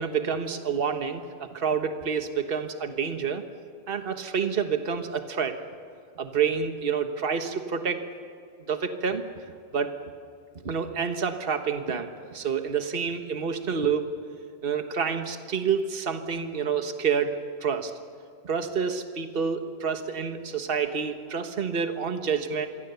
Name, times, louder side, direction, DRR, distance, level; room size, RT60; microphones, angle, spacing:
voice 1, 0.0-3.4 3.9-5.6 6.2-8.0 8.7-9.2 9.7-9.9 10.6-14.1 14.6-17.3 17.6-17.9 18.4-22.7, right 6 dB, 45° right, 7 dB, 1.6 m, -28 dB
28.0 x 23.0 x 7.0 m, 2.3 s
omnidirectional pair, 1.3 m